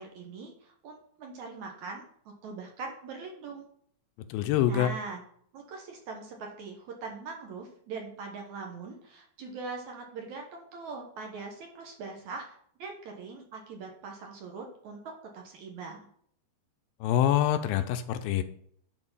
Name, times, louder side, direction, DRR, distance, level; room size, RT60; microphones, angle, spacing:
voice 1, 0.0-2.1 2.4-3.7 4.7-5.2 5.5-16.1, right 4 dB, 65° right, 1 dB, 2.1 m, -41 dB
voice 2, 4.3-4.9 17.0-18.4, left 11 dB, 80° left, 9 dB, 2.3 m, -25 dB
10.0 x 4.7 x 5.5 m, 0.63 s
omnidirectional pair, 4.3 m